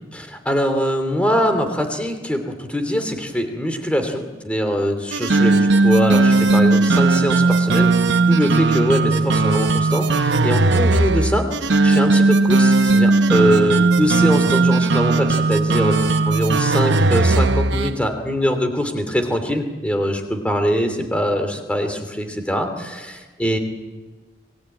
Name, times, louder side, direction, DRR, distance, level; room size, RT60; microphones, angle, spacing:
voice 1, 0.1-8.0 8.3-23.6, equal, 5° left, 6 dB, 2.7 m, -22 dB
sound 1, 5.1-17.9, right 3 dB, 80° right, 0.9 m, -17 dB
26.5 x 18.0 x 9.2 m, 1.3 s
head